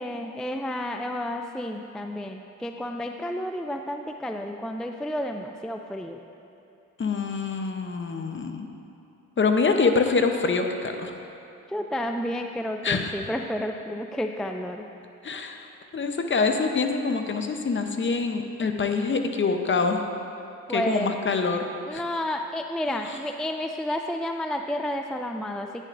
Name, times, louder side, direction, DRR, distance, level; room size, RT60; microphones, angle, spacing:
voice 1, 0.0-6.2 11.7-14.9 20.7-21.1 21.9-25.9, left 1 dB, ahead, 4 dB, 0.3 m, -31 dB
voice 2, 7.0-8.7 9.4-11.1 12.8-13.1 15.2-15.7 15.9-20.0 20.7-22.0 22.9-23.2, left 4 dB, 40° left, 5 dB, 0.8 m, -25 dB
9.9 x 9.8 x 2.6 m, 2.9 s
cardioid pair, 70°, 31 cm